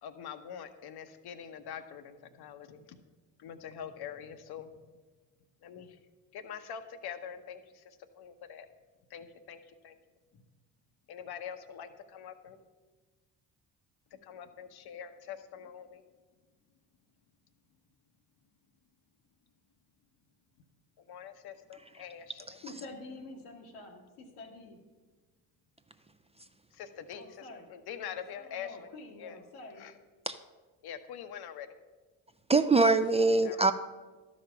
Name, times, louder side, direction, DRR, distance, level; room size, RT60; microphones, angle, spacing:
voice 1, 0.0-3.0 3.4-4.8 5.6-6.0 6.3-8.7 9.1-10.0 10.3-10.4 11.1-12.6 14.1-16.0 21.0-22.6 26.7-28.9 29.2-29.4 29.8-29.9 30.8-31.8 33.4-33.7, left 8 dB, 60° left, 9 dB, 0.9 m, -44 dB
voice 2, 22.6-24.8 27.1-27.7 28.1-29.9, left 2 dB, 90° left, 1 dB, 1.5 m, -48 dB
voice 3, 32.5-33.7, right 3 dB, 15° right, 9 dB, 0.4 m, -23 dB
12.0 x 5.1 x 5.7 m, 1.3 s
hypercardioid pair, 55°, 42 cm